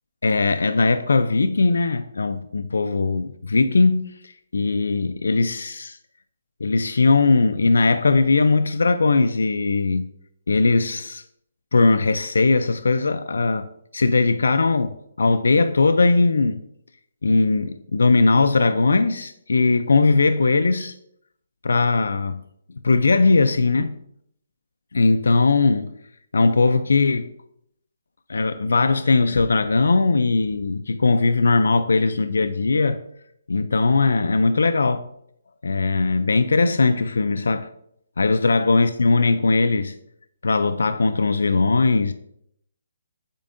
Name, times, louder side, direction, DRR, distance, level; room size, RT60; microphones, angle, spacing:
voice 1, 0.2-6.0 6.6-10.0 10.5-11.2 11.7-13.7 13.9-16.6 17.2-20.9 21.6-22.4 22.8-23.9 24.9-25.9 26.3-27.3 28.3-33.0 33.5-35.1 35.6-37.7 38.2-40.0 40.4-42.1, left 3 dB, 90° left, 0.4 m, -19 dB
8.8 x 4.5 x 2.6 m
hypercardioid pair, 175°, 0 cm